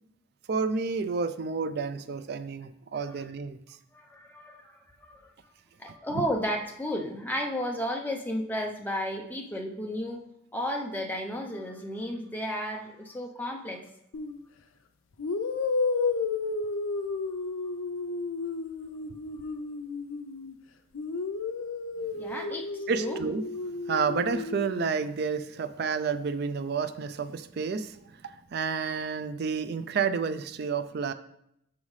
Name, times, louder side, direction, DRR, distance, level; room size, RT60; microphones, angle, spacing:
voice 1, 0.5-3.6 6.1-6.2 22.9-23.4 23.8-31.1, right 5 dB, 50° right, 12 dB, 0.3 m, -30 dB
voice 2, 3.9-5.3 5.8-10.2 10.5-13.8 22.2-23.2, equal, 10° left, 1 dB, 0.6 m, -33 dB
sound 1, 14.1-14.4 15.2-20.5 20.9-24.9, left 4 dB, 75° left, 0.5 m, -32 dB
6.2 x 5.5 x 3.2 m, 0.76 s
head